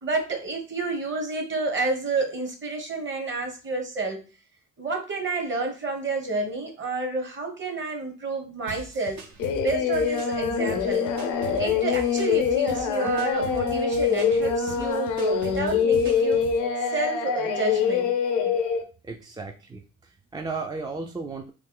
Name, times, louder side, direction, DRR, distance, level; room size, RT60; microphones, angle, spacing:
voice 1, 0.0-4.2 4.8-9.2 9.6-11.1 11.6-16.4 16.9-18.1, right 3 dB, 40° right, 4 dB, 1.1 m, -29 dB
sound 1, 8.7-16.6, right 5 dB, 65° right, 0.8 m, -41 dB
Singing, 9.4-18.8, left 6 dB, 85° left, 0.6 m, -24 dB
voice 2, 19.0-21.5, right 3 dB, 15° right, 3 dB, 0.3 m, -35 dB
3.1 x 2.3 x 3.7 m, 0.33 s
cardioid pair, 90°, 30 cm